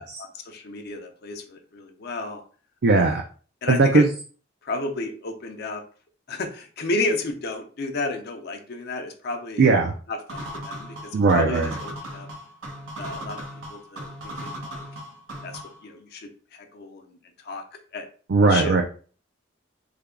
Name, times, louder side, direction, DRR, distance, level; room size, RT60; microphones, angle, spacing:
voice 1, 0.0-2.4 2.9-3.2 3.6-4.1 4.6-5.8 6.3-9.7 10.1-12.3 13.0-13.4 13.7-14.8 15.4-16.3 16.7-17.2 17.4-17.6 17.9-18.1 18.5-18.8, left 2 dB, 55° left, 5 dB, 0.5 m, -32 dB
voice 2, 2.8-3.2 3.7-4.1 9.6-9.9 11.1-11.7 18.3-18.8, right 3 dB, 55° right, 2 dB, 0.4 m, -18 dB
sound 1, 10.3-15.9, equal, 90° right, 1.0 m, -37 dB
3.3 x 2.2 x 3.6 m, 0.41 s
head